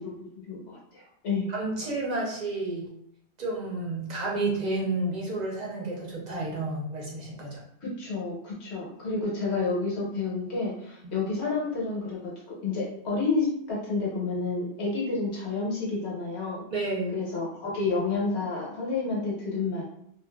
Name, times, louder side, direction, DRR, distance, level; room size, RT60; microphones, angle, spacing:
voice 1, 0.0-1.5 7.8-16.6 17.1-19.8, left 3 dB, 80° left, -4 dB, 1.1 m, -30 dB
voice 2, 1.5-2.9 3.4-7.6 16.7-17.2, right 2 dB, 45° right, -3 dB, 0.7 m, -31 dB
2.5 x 2.5 x 2.2 m, 0.69 s
omnidirectional pair, 1.1 m